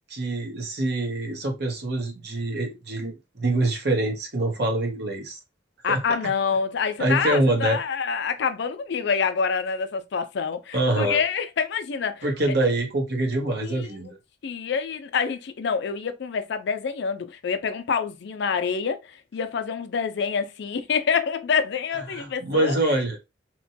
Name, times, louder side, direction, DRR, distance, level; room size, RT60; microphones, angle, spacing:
voice 1, 0.1-5.4 5.9-6.0 7.0-7.8 10.7-11.2 12.2-14.2 22.1-23.2, right 2 dB, 60° right, 0.9 m, -25 dB
voice 2, 5.8-12.5 13.6-14.1 14.4-23.0, left 6 dB, 65° left, 0.4 m, -27 dB
3.0 x 2.2 x 2.6 m
head